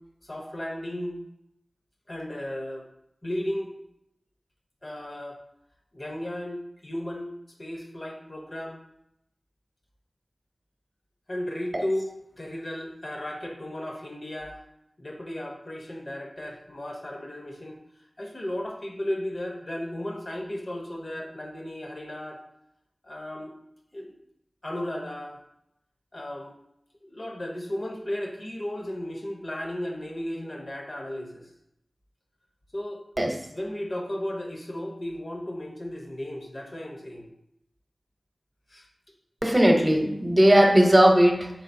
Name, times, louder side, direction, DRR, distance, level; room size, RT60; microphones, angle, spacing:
voice 1, 0.2-1.2 2.1-2.9 3.2-3.7 4.8-5.4 5.9-7.3 7.6-8.8 11.3-14.6 15.0-17.8 18.2-22.4 23.0-23.5 23.9-24.1 24.6-25.4 26.1-26.5 27.0-31.5 32.7-33.0 33.5-37.3 38.7-38.9, left 1 dB, 45° left, 1 dB, 0.9 m, -34 dB
voice 2, 39.4-41.5, equal, 30° right, 1 dB, 1.0 m, -18 dB
4.7 x 3.7 x 2.7 m, 0.80 s
cardioid pair, 40°, 0 cm